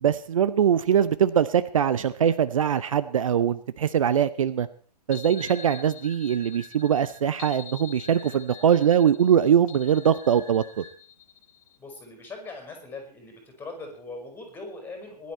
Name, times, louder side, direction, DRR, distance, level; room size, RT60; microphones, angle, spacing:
voice 1, 0.0-4.7 5.1-10.8, right 8 dB, 55° right, 15 dB, 0.8 m, -22 dB
sound 1, 5.1-11.8, left 9 dB, 50° left, 2.5 m, -46 dB
sound 2, 5.3-7.3 8.0-9.1 9.8-10.9, right 1 dB, 85° right, 6.5 m, -49 dB
voice 2, 11.8-15.3, left 3 dB, 10° left, 3 dB, 4.7 m, -40 dB
19.5 x 11.5 x 4.4 m, 0.42 s
figure-of-eight pair, 120°, 21 cm